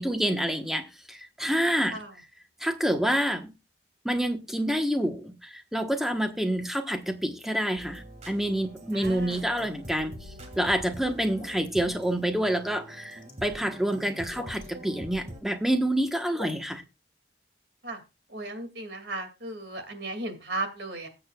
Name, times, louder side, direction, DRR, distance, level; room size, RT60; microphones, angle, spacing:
voice 1, 0.0-2.0 2.6-3.5 4.0-10.1 10.6-16.8, right 1 dB, ahead, 1.2 m, -28 dB
sound 1, 7.8-15.4, equal, 40° right, 2.0 m, -44 dB
voice 2, 8.9-9.4 17.8-18.0 18.3-21.1, right 2 dB, 65° right, 2.4 m, -35 dB
sound 2, 11.4-11.7 12.8-13.3 14.3-14.7 15.5-15.8 16.1-16.6, left 1 dB, 25° left, 2.5 m, -42 dB
20.5 x 7.8 x 2.4 m
head